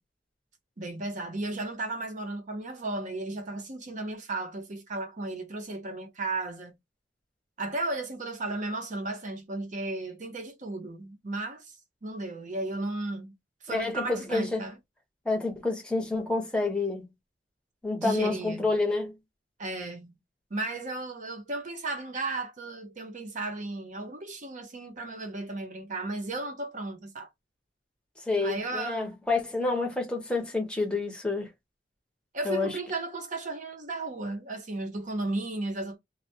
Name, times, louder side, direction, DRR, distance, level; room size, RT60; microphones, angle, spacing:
voice 1, 0.8-6.8 7.6-11.8 12.0-13.3 13.6-14.8 18.0-18.7 19.6-20.2 20.5-27.3 28.4-29.1 32.3-36.0, right 2 dB, 45° right, 0.7 m, -34 dB
voice 2, 13.7-14.6 15.2-17.1 17.8-19.1 28.3-31.5 32.4-32.7, left 3 dB, 5° left, 0.7 m, -28 dB
2.2 x 2.1 x 2.7 m
head